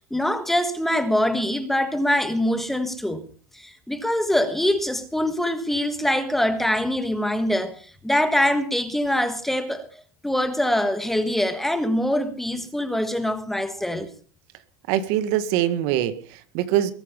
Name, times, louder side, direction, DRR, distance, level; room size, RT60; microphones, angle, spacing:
voice 1, 0.1-3.3 3.5-14.1, left 1 dB, 5° left, 1.6 m, -24 dB
voice 2, 14.9-16.9, right 12 dB, 60° right, 1.8 m, -23 dB
21.5 x 9.3 x 5.4 m
supercardioid pair, 150°, 9 cm